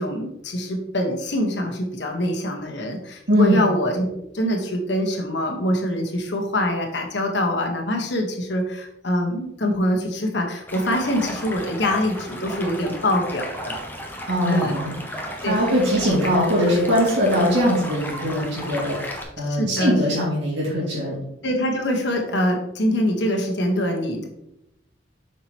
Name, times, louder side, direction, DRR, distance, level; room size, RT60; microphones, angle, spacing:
voice 1, 0.0-4.1 4.3-13.8 14.5-14.7 15.4-15.6 19.4-20.0 21.4-24.3, left 1 dB, 65° left, 2 dB, 1.4 m, -24 dB
voice 2, 3.3-3.6 14.3-19.0 19.4-21.2, equal, 65° right, -6 dB, 2.5 m, -21 dB
Stream, 10.7-19.2, equal, 10° left, 0.9 m, -34 dB
7.5 x 5.9 x 3.0 m, 0.82 s
head